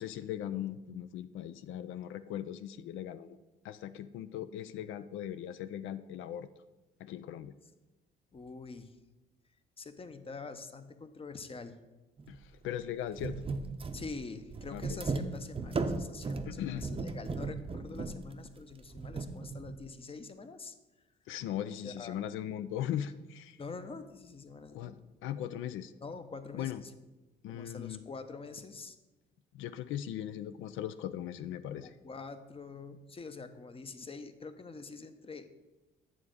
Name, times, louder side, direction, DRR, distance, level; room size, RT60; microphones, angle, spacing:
voice 1, 0.0-3.4 3.6-6.5 7.0-7.5 12.3-13.4 14.7-15.0 16.5-16.9 21.3-23.6 24.7-24.9 25.2-25.9 26.5-26.8 27.4-28.0 29.5-31.9, left 11 dB, 85° left, 12 dB, 0.4 m, -39 dB
voice 2, 8.3-9.0 9.8-11.8 13.9-20.7 21.8-22.2 23.6-25.0 26.0-26.9 27.5-29.0 31.7-35.5, left 4 dB, 30° left, 9 dB, 0.6 m, -45 dB
sound 1, 12.2-12.4 12.6-12.7 13.1-19.8, right 3 dB, 25° right, 0.6 m, -37 dB
9.0 x 3.6 x 6.3 m, 1.1 s
cardioid pair, 90°, 20 cm